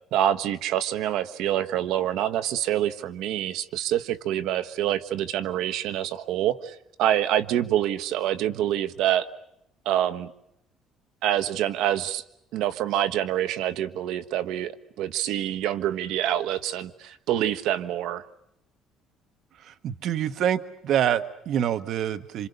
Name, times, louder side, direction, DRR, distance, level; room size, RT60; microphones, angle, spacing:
voice 1, 0.1-9.3 9.8-10.3 11.2-12.2 12.5-18.2, right 11 dB, 75° right, 12 dB, 1.3 m, -26 dB
voice 2, 19.6-22.5, right 10 dB, 55° right, 10 dB, 1.2 m, -26 dB
28.0 x 27.5 x 6.7 m, 0.78 s
cardioid pair, 145°, 0 cm